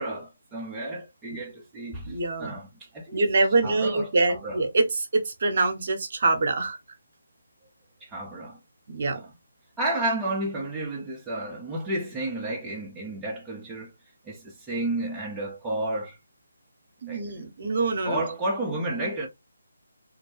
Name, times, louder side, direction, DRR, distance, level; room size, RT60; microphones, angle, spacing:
voice 1, 0.0-3.2 3.6-4.6 8.0-8.6 9.1-9.3 9.8-13.9 14.3-16.2 17.1-17.2 18.0-19.3, right 1 dB, 10° right, 0.5 m, -31 dB
voice 2, 2.1-2.6 3.1-6.8 8.9-9.2 17.0-18.2, right 3 dB, 50° right, 0.8 m, -25 dB
2.6 x 2.1 x 3.1 m
figure-of-eight pair, 150°, 0 cm